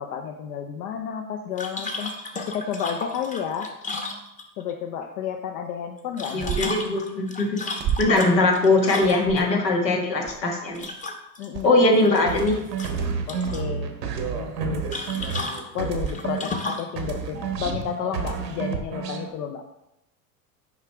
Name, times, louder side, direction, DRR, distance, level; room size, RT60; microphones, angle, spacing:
voice 1, 0.0-2.1 2.5-3.7 4.6-6.6 11.4-11.7 13.3-13.9 14.3-15.0 15.7-19.6, left 8 dB, 70° left, 4 dB, 0.7 m, -31 dB
sound 1, 1.6-4.7 6.0-9.4 10.8-11.5 11.8-12.5 12.8-13.7 14.9-16.9, left 3 dB, 15° left, 0.8 m, -34 dB
voice 2, 6.3-7.6 8.0-10.9 11.6-12.6, left 2 dB, 90° left, 1 dB, 1.6 m, -21 dB
sound 2, 6.4-6.9 7.8-8.3 9.0-9.6 10.3-10.4 10.7-11.0 11.5-11.7 13.0-13.1, right 9 dB, 25° right, 0.4 m, -30 dB
sound 3, 12.3-16.7 17.0-19.3, right 6 dB, 90° right, 1.0 m, -30 dB
6.4 x 5.0 x 3.4 m, 0.85 s
hypercardioid pair, 95°, 48 cm